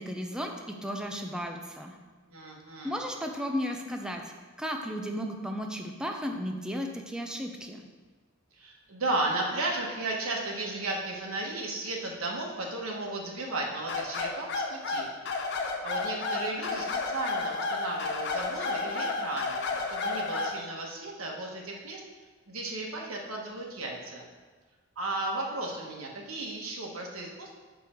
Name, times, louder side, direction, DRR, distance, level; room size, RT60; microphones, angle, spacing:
voice 1, 0.0-2.0 2.8-4.3 4.6-7.8, equal, 5° right, 2 dB, 0.6 m, -34 dB
voice 2, 2.3-3.0 8.6-15.1 15.8-22.0 22.5-24.3 25.0-27.5, right 2 dB, 85° right, -1 dB, 1.3 m, -34 dB
sound 1, 13.9-20.6, left 3 dB, 55° left, 0.7 m, -31 dB
6.5 x 5.4 x 4.4 m, 1.3 s
head